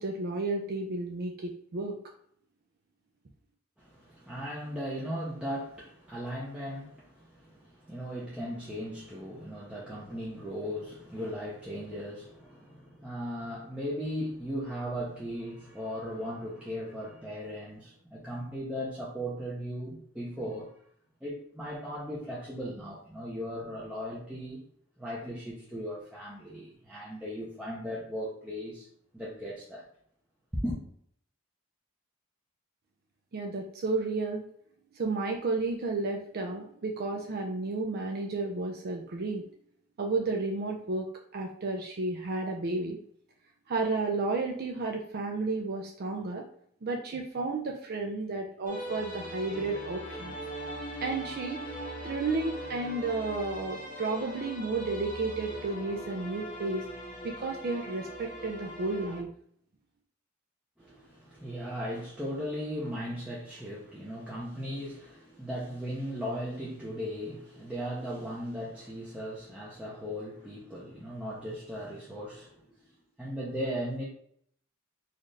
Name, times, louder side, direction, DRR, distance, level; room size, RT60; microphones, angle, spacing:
voice 1, 0.0-2.0 33.3-34.4 34.9-39.4 40.0-41.1 41.3-43.0 43.7-46.4 46.8-50.3 51.0-51.6 52.0-56.8 57.2-59.3, right 3 dB, 50° right, 0.5 m, -32 dB
voice 2, 3.8-20.8 21.2-24.6 25.0-28.9 29.1-29.9 30.6-30.8 60.8-72.6 73.2-74.0, equal, 5° right, 0.7 m, -37 dB
sound 1, 48.7-59.2, equal, 40° left, 0.9 m, -40 dB
4.1 x 2.5 x 3.2 m
head